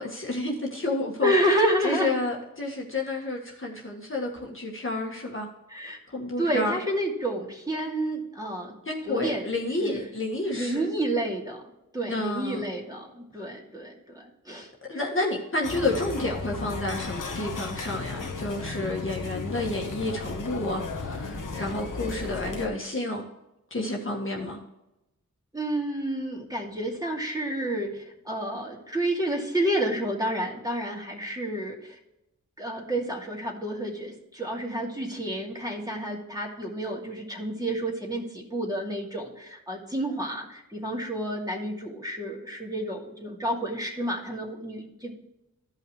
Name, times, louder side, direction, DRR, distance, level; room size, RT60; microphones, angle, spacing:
voice 1, 0.0-1.3 1.8-5.5 6.1-6.8 8.9-10.9 12.1-12.6 14.9-23.3 23.7-24.6, left 2 dB, 40° left, -2 dB, 1.7 m, -30 dB
voice 2, 1.2-2.1 5.7-6.0 6.4-8.7 9.1-10.1 10.5-11.6 11.9-14.7 25.5-32.0 32.6-45.1, right 1 dB, 10° right, -2 dB, 2.6 m, -30 dB
sound 1, 15.6-22.7, left 3 dB, 75° left, 1.2 m, -35 dB
14.5 x 5.6 x 3.2 m, 0.90 s
wide cardioid pair, 65°, 32 cm